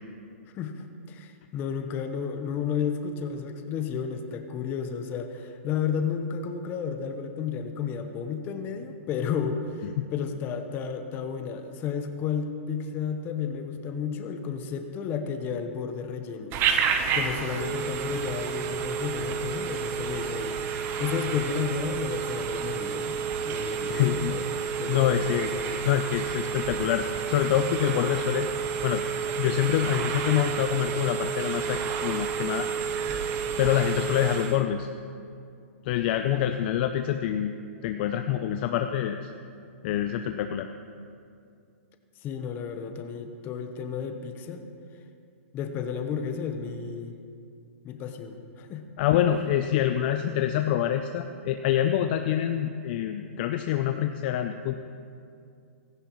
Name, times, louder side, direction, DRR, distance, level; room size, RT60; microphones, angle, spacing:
voice 1, 0.5-16.6 17.1-23.2 23.4-25.8 42.2-44.6 45.5-47.1 47.8-48.9, left 6 dB, 25° left, 6 dB, 1.0 m, -32 dB
Telephone, 16.5-34.6, right 7 dB, 30° right, 0.9 m, -30 dB
voice 2, 23.8-25.5 25.8-28.5 28.8-29.0 29.4-32.7 33.6-34.9 35.8-37.5 37.8-39.3 39.8-40.7 49.0-54.7, left 11 dB, 45° left, 7 dB, 0.5 m, -26 dB
16.0 x 14.5 x 3.1 m, 2.4 s
hypercardioid pair, 145°, 8 cm